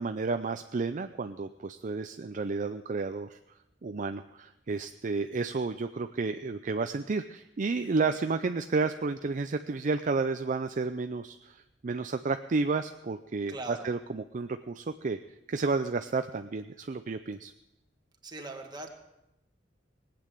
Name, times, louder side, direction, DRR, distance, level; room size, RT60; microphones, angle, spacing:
voice 1, 0.0-3.4 3.8-15.2 15.5-17.5, right 4 dB, 45° right, 9 dB, 0.5 m, -31 dB
voice 2, 13.5-13.9 18.2-18.9, right 2 dB, 25° right, 2 dB, 1.9 m, -40 dB
19.5 x 8.6 x 7.5 m, 0.89 s
head